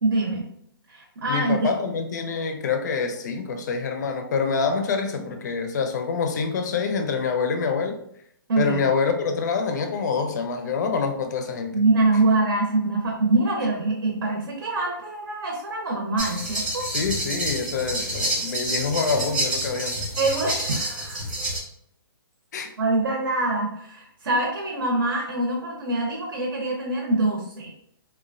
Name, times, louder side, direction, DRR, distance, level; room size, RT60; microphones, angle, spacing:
voice 1, 0.0-0.5 0.9-1.7 8.5-8.8 11.7-16.8 20.2-21.3 22.8-27.7, right 2 dB, 70° right, -1 dB, 0.7 m, -24 dB
voice 2, 1.3-8.0 8.6-11.7 16.9-20.0 22.5-22.7, left 5 dB, 50° left, 6 dB, 0.4 m, -26 dB
sound 1, 16.2-21.6, right 1 dB, 10° right, 0.6 m, -28 dB
2.9 x 2.2 x 2.5 m, 0.71 s
hypercardioid pair, 170°, 12 cm